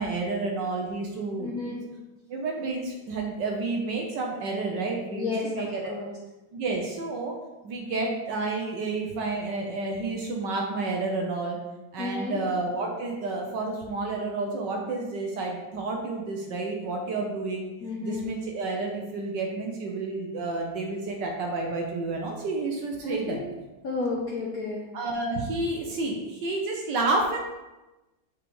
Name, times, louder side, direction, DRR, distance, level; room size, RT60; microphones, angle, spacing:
voice 1, 0.0-1.7 2.3-5.9 6.5-7.4 7.6-11.6 11.9-17.7 18.0-23.4 24.9-27.4, right 3 dB, 70° right, 1 dB, 1.4 m, -30 dB
voice 2, 1.4-1.8 5.1-6.1 12.0-12.4 17.8-18.3 23.0-23.4 23.8-24.9, left 3 dB, 60° left, -2 dB, 1.1 m, -32 dB
6.5 x 6.0 x 3.1 m, 1.1 s
omnidirectional pair, 2.1 m